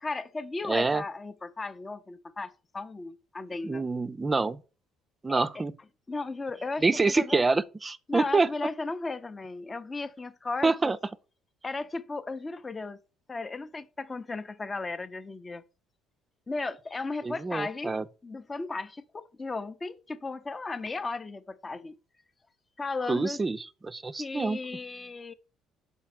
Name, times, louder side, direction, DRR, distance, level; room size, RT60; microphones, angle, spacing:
voice 1, 0.0-3.8 5.3-5.6 6.1-6.9 7.2-7.4 8.1-11.0 11.6-13.0 13.3-15.6 16.5-17.9 18.2-21.9 22.8-23.4 24.2-25.3, left 3 dB, 25° left, 0.7 m, -35 dB
voice 2, 0.7-1.0 3.6-4.6 5.2-5.7 6.8-8.5 10.6-11.0 17.2-18.0 23.1-24.6, right 3 dB, 20° right, 0.5 m, -26 dB
5.7 x 4.6 x 5.9 m
cardioid pair, 95°, 0 cm